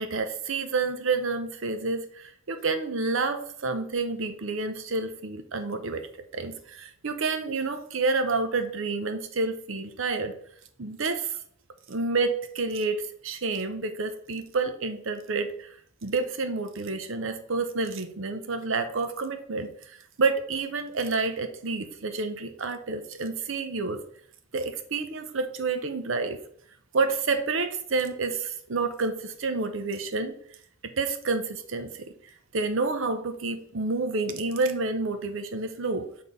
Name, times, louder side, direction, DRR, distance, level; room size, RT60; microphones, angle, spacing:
voice 1, 0.0-6.0 6.3-10.3 10.8-11.4 11.9-15.7 16.0-24.0 24.5-26.4 26.9-30.3 30.8-32.0 32.5-36.0, right 3 dB, 65° right, 8 dB, 0.7 m, -29 dB
6.7 x 3.8 x 4.0 m, 0.62 s
head